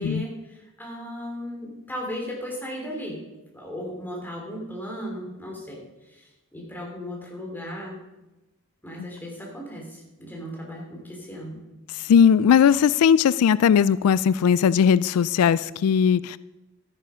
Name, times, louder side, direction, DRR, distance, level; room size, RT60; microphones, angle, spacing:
voice 1, 0.0-3.2 3.5-5.8 6.1-8.0 8.8-11.6, equal, 10° left, -2 dB, 3.2 m, -36 dB
voice 2, 11.9-16.4, left 7 dB, 85° left, 18 dB, 0.3 m, -18 dB
12.0 x 9.9 x 5.7 m, 1.1 s
head